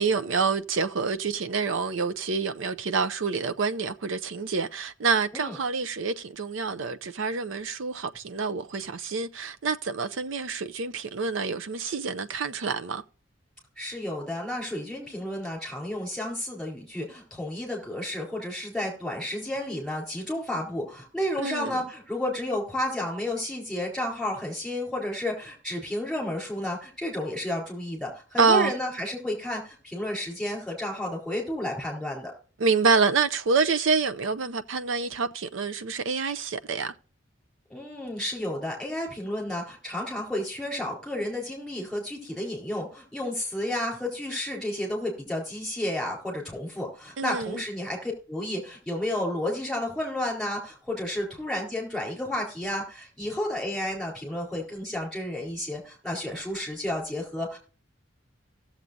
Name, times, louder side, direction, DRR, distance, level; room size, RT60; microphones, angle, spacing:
voice 1, 0.0-13.0 21.4-21.8 28.4-28.7 32.6-36.9 47.2-47.6, right 4 dB, 80° right, 0.6 m, -27 dB
voice 2, 13.8-32.3 37.7-57.6, left 1 dB, ahead, 4.2 m, -31 dB
17.5 x 7.3 x 2.6 m
head